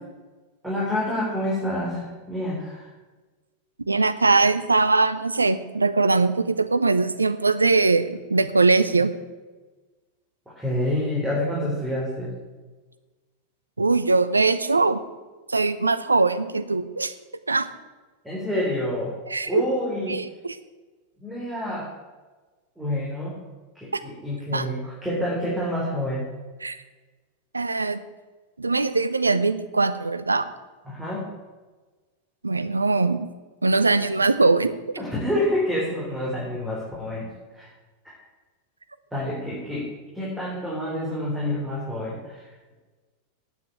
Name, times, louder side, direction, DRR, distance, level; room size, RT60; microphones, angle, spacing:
voice 1, 0.6-2.9 10.5-12.4 18.2-19.2 19.5-20.2 21.2-21.9 22.8-23.4 23.7-26.3 30.8-31.3 35.0-37.7 38.0-38.2 39.1-42.5, left 1 dB, 5° right, -6 dB, 4.1 m, -28 dB
voice 2, 3.9-9.1 13.8-15.0 15.5-17.1 17.5-17.7 19.3-19.7 20.1-20.6 24.5-24.7 26.6-26.8 27.5-28.0 28.6-30.5 32.4-33.3 33.6-34.7, right 3 dB, 85° right, 12 dB, 0.7 m, -21 dB
9.4 x 8.4 x 9.0 m, 1.3 s
figure-of-eight pair, 90°, 0 cm